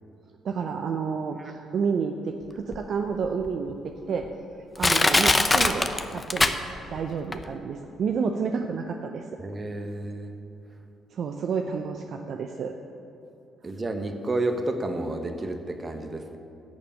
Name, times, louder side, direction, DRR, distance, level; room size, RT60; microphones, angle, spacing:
voice 1, 0.4-4.3 4.8-6.6 6.9-9.3 11.1-12.7, right 5 dB, 60° right, 5 dB, 0.6 m, -30 dB
Crushing, 2.7-2.8 3.5-3.6 4.2-4.3 4.8-7.0 7.3-7.4, left 2 dB, 25° left, 0.8 m, -21 dB
voice 2, 9.4-10.3 13.6-16.4, right 2 dB, 35° right, 6 dB, 1.3 m, -30 dB
10.5 x 6.9 x 8.8 m, 2.9 s
hypercardioid pair, 45°, 0 cm